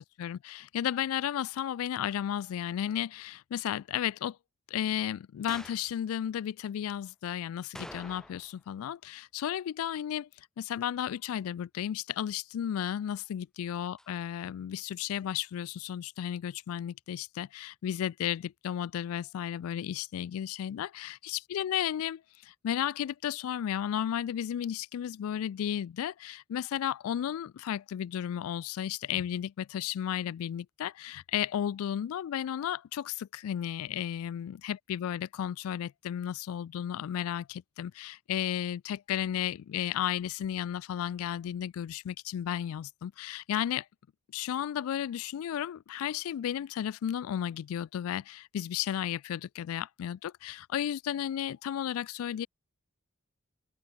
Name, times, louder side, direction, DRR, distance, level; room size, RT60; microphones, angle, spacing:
voice 1, 0.0-4.4 4.7-10.3 10.6-43.9 44.3-52.5, left 10 dB, 80° left, 0.3 m, -33 dB
sound 1, 5.5-5.9 7.7-8.6 8.9-9.0 14.0-14.1, equal, 5° left, 2.1 m, -46 dB
open air
head